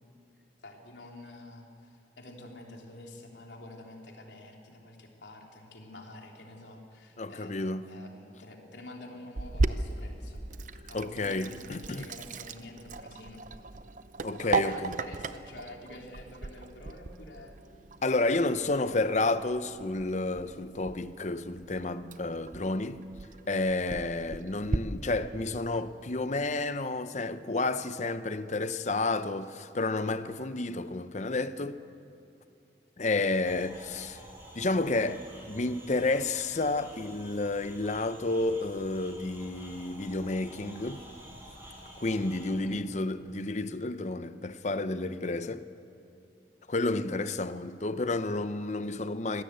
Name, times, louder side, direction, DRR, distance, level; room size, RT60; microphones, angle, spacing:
voice 1, 0.6-7.5 7.9-10.4 10.9-13.4 14.3-17.5 42.6-42.9, left 1 dB, 80° left, 3.3 m, -48 dB
voice 2, 7.2-7.8 10.9-12.1 14.2-14.9 18.0-23.0 23.5-31.8 33.0-34.2 34.6-41.0 42.0-45.7 46.7-49.4, left 2 dB, 40° left, 0.8 m, -31 dB
Sink (filling or washing), 9.4-24.8, right 3 dB, 45° right, 0.6 m, -37 dB
sound 1, 33.4-42.5, right 1 dB, 15° right, 5.9 m, -50 dB
25.0 x 16.5 x 8.2 m
head